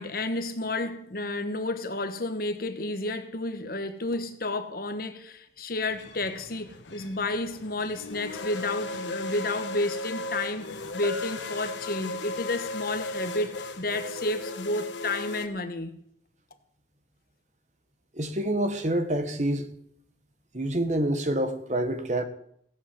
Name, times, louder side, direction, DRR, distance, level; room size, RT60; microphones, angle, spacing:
voice 1, 0.0-10.7 10.9-15.9, left 2 dB, 50° left, 1.3 m, -31 dB
sound 1, 5.9-15.5, left 2 dB, 85° left, 1.3 m, -37 dB
Bell, 11.0-12.7, left 1 dB, 25° right, 2.6 m, -37 dB
voice 2, 18.1-19.7 20.5-22.2, right 1 dB, 40° right, 1.4 m, -27 dB
16.0 x 8.8 x 7.5 m
head